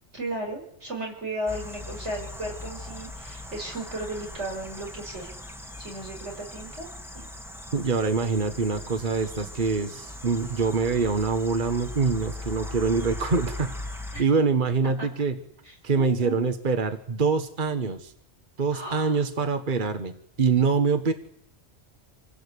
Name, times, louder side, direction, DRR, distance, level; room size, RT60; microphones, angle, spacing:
voice 1, 0.1-5.3 5.8-6.9 7.1-7.3 14.1-14.2 15.0-15.1 15.6-16.5 18.7-19.2, right 1 dB, 90° right, 0 dB, 6.3 m, -35 dB
sound 1, 1.5-14.2, left 2 dB, ahead, 1.4 m, -39 dB
voice 2, 7.7-13.7 14.2-15.4 15.8-18.1 18.6-20.1 20.4-21.1, right 5 dB, 45° right, 7 dB, 1.5 m, -25 dB
26.5 x 17.0 x 8.4 m, 0.73 s
omnidirectional pair, 1.1 m